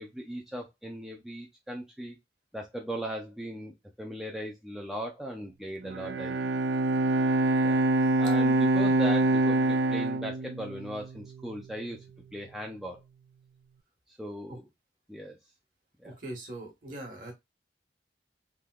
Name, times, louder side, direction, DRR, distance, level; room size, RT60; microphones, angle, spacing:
voice 1, 0.0-2.2 2.5-6.4 7.6-7.8 8.2-12.0 12.3-13.0 14.1-14.7 15.1-15.4 16.0-16.2, equal, 5° right, 0 dB, 0.4 m, -38 dB
Bowed string instrument, 5.8-11.3, right 2 dB, 80° right, 0.3 m, -25 dB
voice 2, 16.0-17.3, right 1 dB, 50° right, 2 dB, 1.2 m, -41 dB
3.5 x 2.7 x 2.2 m, 0.20 s
head